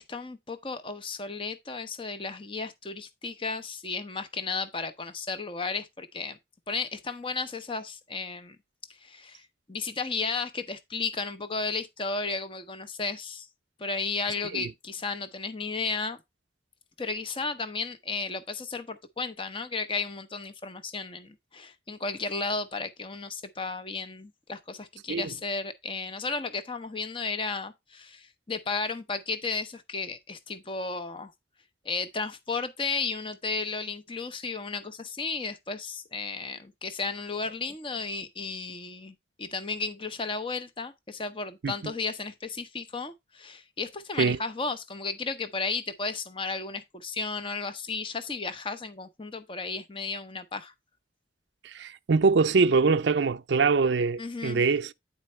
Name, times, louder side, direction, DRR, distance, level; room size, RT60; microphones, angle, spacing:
voice 1, 0.0-6.4 6.7-8.6 9.0-9.4 9.7-13.5 13.8-16.2 17.0-31.3 31.8-50.7 54.2-54.6, left 4 dB, 25° left, 0.7 m, -34 dB
voice 2, 51.6-54.9, right 4 dB, 70° right, 0.5 m, -24 dB
9.5 x 4.3 x 4.3 m
head